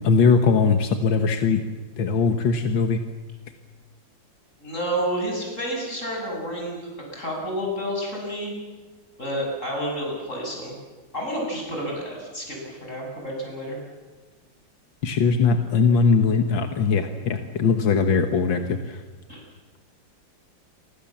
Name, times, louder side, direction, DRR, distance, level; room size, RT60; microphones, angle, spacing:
voice 1, 0.0-1.6 2.0-3.0 15.0-19.0, left 5 dB, 85° left, 7 dB, 2.1 m, -20 dB
voice 2, 4.6-8.5 9.2-10.7 11.1-13.8 19.3-19.4, equal, 40° left, -1 dB, 7.9 m, -30 dB
29.0 x 24.0 x 7.3 m, 1.3 s
omnidirectional pair, 2.0 m